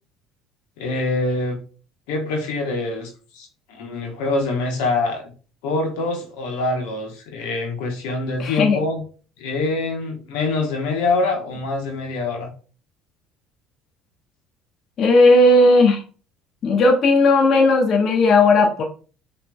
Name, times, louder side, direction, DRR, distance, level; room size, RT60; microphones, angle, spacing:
voice 1, 0.8-1.6 2.1-5.3 5.6-9.0 9.4-12.5, left 3 dB, 80° left, 2 dB, 1.1 m, -25 dB
voice 2, 8.4-8.8 15.0-16.0 16.6-18.8, left 2 dB, 50° left, 2 dB, 1.0 m, -15 dB
5.8 x 3.2 x 2.2 m, 0.37 s
hypercardioid pair, 75°, 0 cm